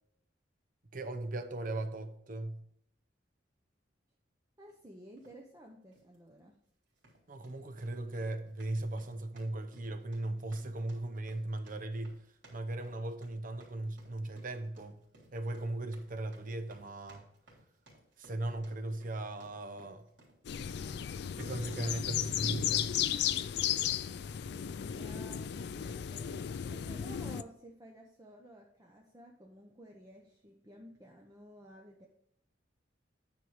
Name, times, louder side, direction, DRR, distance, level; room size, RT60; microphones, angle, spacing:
voice 1, 0.9-2.6 7.3-12.2 12.5-15.0 15.3-17.2 18.2-20.1 21.4-22.9, right 2 dB, 50° right, 0.8 m, -38 dB
voice 2, 4.6-6.6 24.9-26.3 26.7-32.1, equal, 20° right, 0.8 m, -53 dB
sound 1, 5.2-5.4 5.9-6.2 6.9-20.4, right 1 dB, 75° right, 3.5 m, -62 dB
sound 2, 20.4-27.4, left 9 dB, 65° left, 0.4 m, -34 dB
9.8 x 4.7 x 5.0 m
head